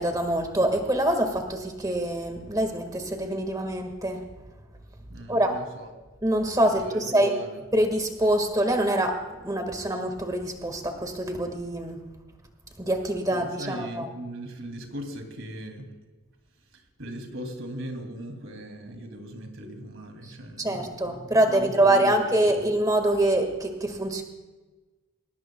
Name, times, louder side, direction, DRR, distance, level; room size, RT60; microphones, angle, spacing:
voice 1, 0.0-4.2 5.3-5.6 6.2-7.3 7.7-12.0 12.8-14.1 20.6-24.2, right 1 dB, 15° right, 5 dB, 1.7 m, -25 dB
voice 2, 5.1-5.9 6.7-7.6 13.3-16.0 16.7-22.7, right 1 dB, 65° right, 4 dB, 2.6 m, -39 dB
21.5 x 19.0 x 2.3 m, 1.2 s
head